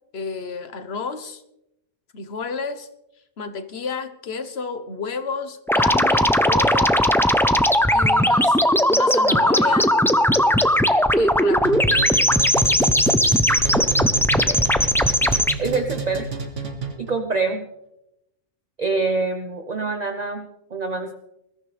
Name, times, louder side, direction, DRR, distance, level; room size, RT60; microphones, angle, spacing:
voice 1, 0.1-1.4 2.1-2.9 3.4-7.0 7.9-9.9 11.2-11.7, left 5 dB, 60° left, 9 dB, 1.3 m, -31 dB
sound 1, 5.7-15.5, equal, 5° left, 0.4 m, -18 dB
sound 2, 11.6-17.2, right 5 dB, 80° right, 2.1 m, -30 dB
voice 2, 15.6-16.3 17.0-17.7 18.8-21.1, right 4 dB, 40° right, 6 dB, 0.9 m, -25 dB
21.5 x 13.5 x 3.3 m, 0.85 s
omnidirectional pair, 1.2 m